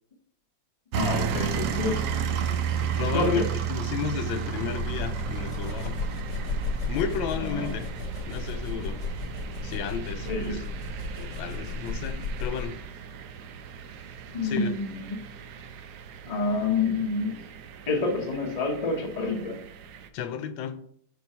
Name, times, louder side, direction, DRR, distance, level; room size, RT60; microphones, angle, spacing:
voice 1, 0.9-2.0 3.0-3.5 7.4-7.8 10.2-10.6 14.3-15.2 16.3-17.4 17.9-19.6, left 3 dB, 30° left, 0.7 m, -28 dB
sound 1, 0.9-20.1, right 7 dB, 70° right, 1.0 m, -34 dB
voice 2, 2.9-5.9 6.9-7.9 8.3-9.0 9.6-10.6 11.2-12.8 14.4-14.7 20.1-20.8, left 8 dB, 90° left, 1.3 m, -33 dB
sound 2, 4.6-12.9, left 2 dB, 70° left, 1.3 m, -34 dB
5.8 x 3.1 x 5.4 m
omnidirectional pair, 2.1 m